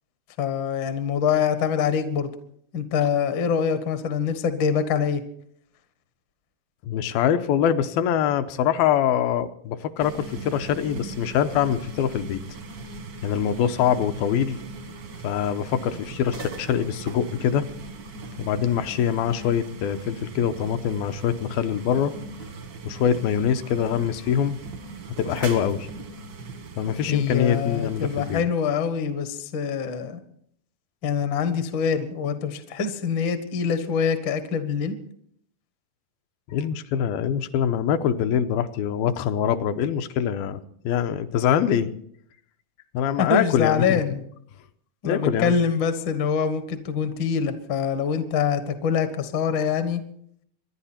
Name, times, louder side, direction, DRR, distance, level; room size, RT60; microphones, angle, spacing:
voice 1, 0.4-2.3 2.7-5.2 27.1-30.2 31.0-34.9 43.2-44.2 45.0-50.0, left 7 dB, 65° left, 9 dB, 1.2 m, -24 dB
voice 2, 6.8-12.4 13.2-14.6 15.2-17.7 18.4-22.1 22.8-24.6 25.2-25.9 26.8-28.4 36.5-41.9 42.9-44.0 45.0-45.5, left 9 dB, 80° left, 8 dB, 2.5 m, -24 dB
sound 1, 10.0-28.4, right 3 dB, 65° right, 1.1 m, -39 dB
25.5 x 11.0 x 4.3 m, 0.65 s
omnidirectional pair, 4.4 m